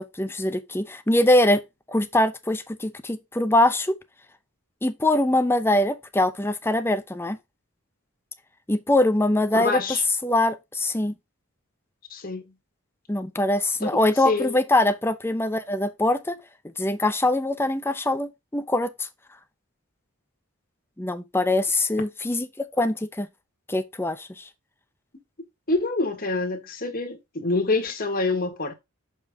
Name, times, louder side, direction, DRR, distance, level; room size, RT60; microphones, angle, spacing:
voice 1, 0.0-1.6 1.9-4.0 4.8-7.4 8.7-9.8 10.2-11.1 13.1-16.4 16.8-19.1 21.0-23.3 23.7-24.5, left 1 dB, 10° left, 0.7 m, -23 dB
voice 2, 9.5-10.0 12.1-12.4 13.8-14.0 14.2-14.6 25.7-28.7, left 3 dB, 45° left, 1.7 m, -26 dB
6.6 x 5.6 x 3.6 m
head